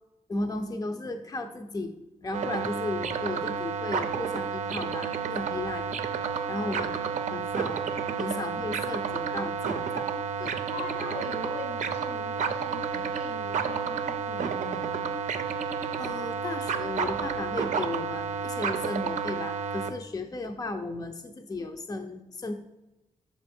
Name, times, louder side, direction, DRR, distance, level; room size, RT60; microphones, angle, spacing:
voice 1, 0.3-6.9 7.3-10.1 10.4-10.6 16.0-22.5, left 2 dB, 30° left, 5 dB, 0.6 m, -35 dB
sound 1, 2.3-19.9, right 6 dB, 75° right, 0.5 m, -31 dB
voice 2, 6.5-6.9 10.7-15.1, left 2 dB, 85° left, 1 dB, 1.8 m, -41 dB
6.1 x 4.5 x 4.3 m, 0.99 s
cardioid pair, 60°, 13 cm